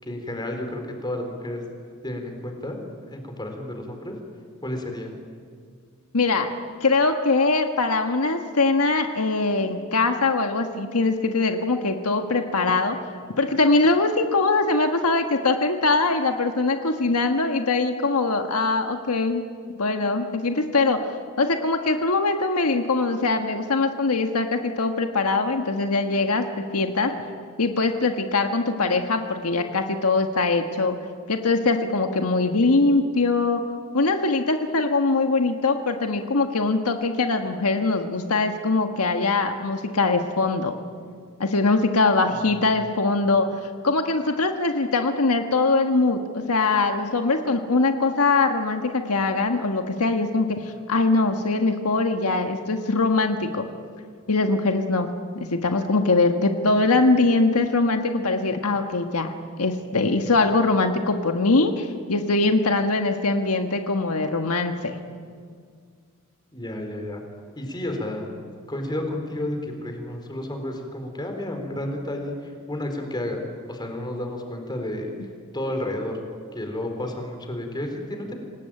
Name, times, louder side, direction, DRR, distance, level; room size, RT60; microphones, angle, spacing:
voice 1, 0.0-1.6 2.0-2.8 3.1-4.2 4.6-5.1 42.3-42.8 66.5-67.2 67.6-68.3 68.7-73.4 73.7-75.1 75.5-76.2 76.5-78.3, left 1 dB, 20° left, 4 dB, 4.0 m, -31 dB
voice 2, 6.1-6.5 6.8-13.0 13.4-19.4 19.8-21.1 21.4-26.4 26.7-27.1 27.6-31.0 31.3-33.6 33.9-40.8 41.4-43.5 43.8-53.6 54.3-55.1 55.5-65.0, left 3 dB, 85° left, 5 dB, 1.5 m, -22 dB
26.5 x 19.0 x 8.9 m, 2.1 s
head